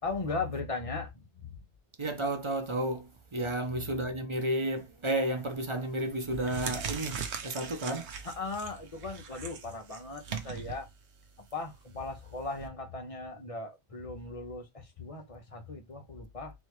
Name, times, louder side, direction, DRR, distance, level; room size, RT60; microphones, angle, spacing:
voice 1, 0.0-1.5 3.4-3.5 8.2-10.9 11.5-16.5, left 3 dB, 30° left, 1.1 m, -38 dB
voice 2, 2.0-8.1, right 1 dB, 35° right, 0.6 m, -32 dB
sound 1, 5.4-5.7 6.2-12.7, right 6 dB, 75° right, 1.1 m, -40 dB
4.3 x 3.3 x 3.1 m
omnidirectional pair, 1.2 m